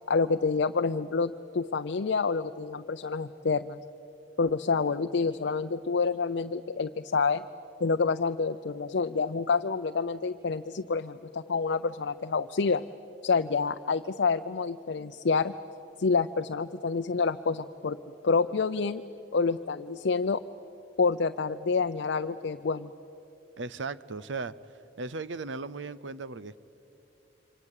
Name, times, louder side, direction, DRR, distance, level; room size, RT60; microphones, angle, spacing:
voice 1, 0.1-3.8 4.4-7.4 7.8-12.8 13.2-15.5 16.0-18.0 18.2-19.0 19.3-20.4 21.0-22.9, left 4 dB, 65° left, 8 dB, 0.5 m, -28 dB
voice 2, 23.6-24.5 25.0-26.6, right 3 dB, 75° right, 17 dB, 0.7 m, -36 dB
28.0 x 25.0 x 8.3 m, 3.0 s
head